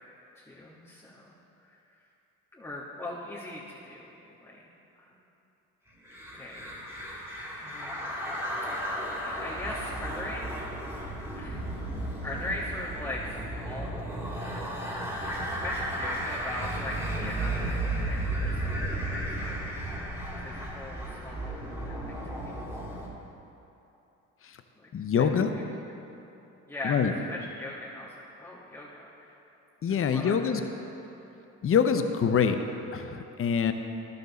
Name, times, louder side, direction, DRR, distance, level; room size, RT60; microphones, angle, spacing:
voice 1, 0.3-1.3 1.6-1.7 2.5-4.1 4.4-4.7 5.0-5.1 6.3-7.3 7.6-8.2 9.2-10.7 11.3-11.7 12.2-14.1 14.4-14.9 15.5-19.7 20.4-22.6 24.8-24.9 25.2-25.3 26.0-26.1 26.7-29.3 29.9-30.3 31.3-31.4, left 1 dB, 10° left, -7 dB, 1.5 m, -40 dB
sound 1, 6.1-23.1, right 1 dB, 10° right, 2.4 m, -34 dB
voice 2, 24.9-25.5 26.8-27.1 29.8-30.6 31.6-32.6 32.9-33.7, left 7 dB, 40° left, 7 dB, 0.7 m, -25 dB
11.5 x 6.9 x 4.1 m, 2.9 s
supercardioid pair, 70°, 35 cm